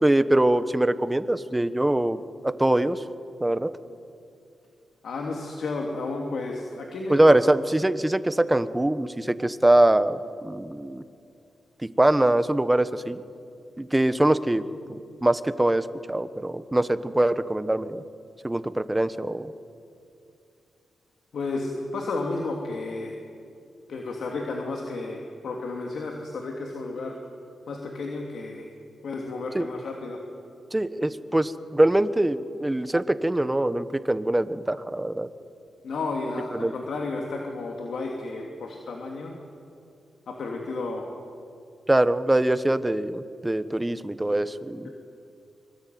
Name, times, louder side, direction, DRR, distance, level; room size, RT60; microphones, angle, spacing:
voice 1, 0.0-3.0 3.4-3.7 7.1-11.0 12.0-13.2 13.8-14.6 14.9-18.0 18.4-19.5 29.5-29.7 30.7-35.3 36.5-36.7 41.9-44.9, right 1 dB, 15° right, 13 dB, 1.2 m, -23 dB
voice 2, 5.0-7.4 21.3-23.1 23.9-27.1 27.7-28.6 29.0-30.2 35.8-39.3 40.3-41.1, left 3 dB, 70° left, 1 dB, 2.9 m, -32 dB
24.5 x 24.5 x 9.4 m, 2.5 s
cardioid pair, 95°, 0 cm